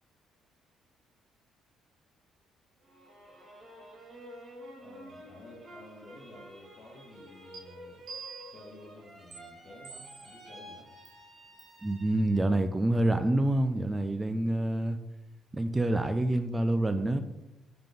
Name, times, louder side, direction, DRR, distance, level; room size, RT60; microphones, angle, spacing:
sound 1, 2.8-12.6 13.1-13.7, equal, 35° right, 2.1 m, -51 dB
voice 1, 4.8-8.0 8.5-10.9, left 2 dB, 50° left, 1 dB, 2.0 m, -52 dB
sound 2, 7.5-7.6 8.1-8.7 9.3-9.4 9.8-10.4 11.0-11.1 11.6-11.8, right 6 dB, 60° right, 2.0 m, -45 dB
voice 2, 11.8-15.0 15.5-17.2, right 1 dB, 15° right, 9 dB, 0.4 m, -27 dB
5.8 x 5.4 x 5.3 m, 0.98 s
cardioid pair, 125°, 0 cm